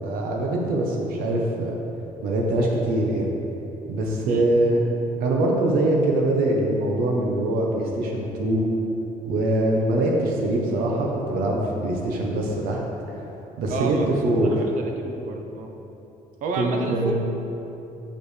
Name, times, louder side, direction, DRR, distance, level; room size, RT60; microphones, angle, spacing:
voice 1, 0.0-1.7 2.2-3.3 3.9-4.8 5.2-8.6 9.3-12.8 13.6-14.0 14.2-14.6 16.5-17.2, right 1 dB, 85° right, -1 dB, 0.9 m, -23 dB
voice 2, 13.7-14.2 14.8-15.7 16.4-17.3, right 4 dB, 60° right, 2 dB, 0.7 m, -31 dB
8.8 x 5.1 x 3.3 m, 3.0 s
cardioid pair, 145°, 15 cm